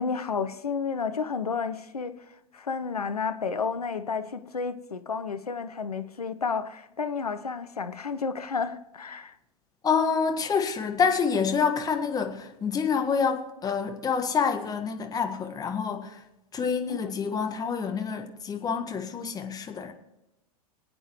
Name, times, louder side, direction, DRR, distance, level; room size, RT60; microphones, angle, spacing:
voice 1, 0.0-2.2 2.5-9.3 16.9-17.1, left 5 dB, 80° left, 0.9 m, -31 dB
voice 2, 9.8-16.2 16.5-19.9, left 6 dB, 20° left, 1.6 m, -27 dB
23.5 x 8.8 x 3.1 m
figure-of-eight pair, 95°, 19 cm